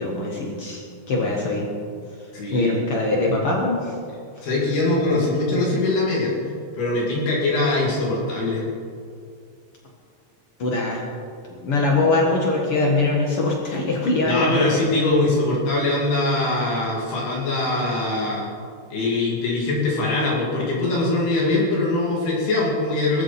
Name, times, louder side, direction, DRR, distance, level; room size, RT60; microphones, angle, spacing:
voice 1, 0.0-1.7 2.5-4.0 4.4-4.5 10.6-11.0 11.5-14.8, left 2 dB, 90° left, -1 dB, 1.2 m, -22 dB
voice 2, 2.3-2.8 4.4-6.3 6.7-8.6 14.2-18.5 18.9-23.2, left 2 dB, 65° left, -5 dB, 4.4 m, -22 dB
19.5 x 14.0 x 4.3 m, 2.3 s
omnidirectional pair, 5.1 m